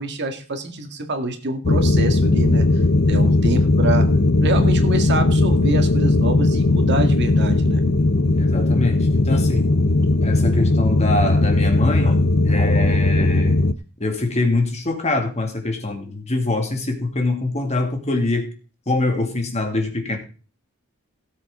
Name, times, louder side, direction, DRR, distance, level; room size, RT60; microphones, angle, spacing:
voice 1, 0.0-2.7 3.1-4.1 4.4-7.8, right 2 dB, 55° right, 1.9 m, -26 dB
sound 1, 1.6-13.7, left 2 dB, 50° left, 0.7 m, -17 dB
voice 2, 8.3-9.7 10.2-12.2 12.4-13.6 14.0-18.5 18.9-20.2, left 2 dB, 30° left, 2.2 m, -24 dB
17.5 x 7.7 x 3.7 m
head